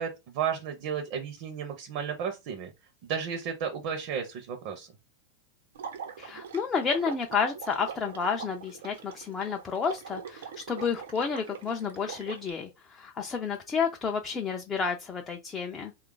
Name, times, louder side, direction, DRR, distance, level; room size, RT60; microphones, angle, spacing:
voice 1, 0.0-2.7 3.0-4.9, right 7 dB, 40° right, 0.6 m, -33 dB
Water / Liquid, 5.7-12.5, right 7 dB, 80° right, 0.8 m, -43 dB
voice 2, 6.2-15.9, left 6 dB, 15° left, 0.3 m, -31 dB
3.2 x 2.3 x 3.7 m
supercardioid pair, 180°, 0 cm